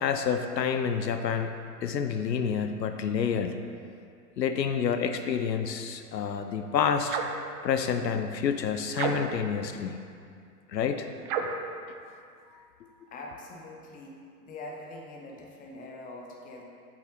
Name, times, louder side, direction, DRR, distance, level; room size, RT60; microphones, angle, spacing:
voice 1, 0.0-1.5 1.8-3.6 4.4-7.2 7.6-10.0 10.7-11.1 12.5-12.7, left 7 dB, 80° left, 7 dB, 0.6 m, -28 dB
sound 1, 7.1-7.5 8.9-9.5 11.2-11.7, right 6 dB, 35° right, 0.5 m, -31 dB
voice 2, 13.1-14.1 14.4-16.6, left 2 dB, 15° left, 0 dB, 0.8 m, -43 dB
7.9 x 5.9 x 3.3 m, 2.4 s
figure-of-eight pair, 105°, 49 cm